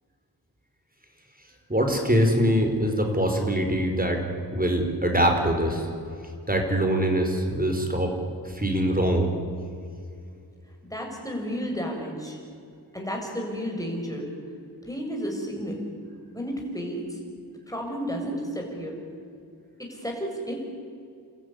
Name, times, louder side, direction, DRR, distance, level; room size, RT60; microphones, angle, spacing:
voice 1, 1.7-4.2 4.5-5.9 6.5-8.1 8.5-9.3, equal, 20° right, 4 dB, 4.9 m, -23 dB
voice 2, 10.9-12.4 12.9-14.3 14.8-15.8 16.3-17.2 17.7-19.0 19.8-20.5, equal, 10° left, 0 dB, 6.8 m, -32 dB
29.5 x 14.0 x 9.9 m, 2.4 s
wide cardioid pair, 45°, 40 cm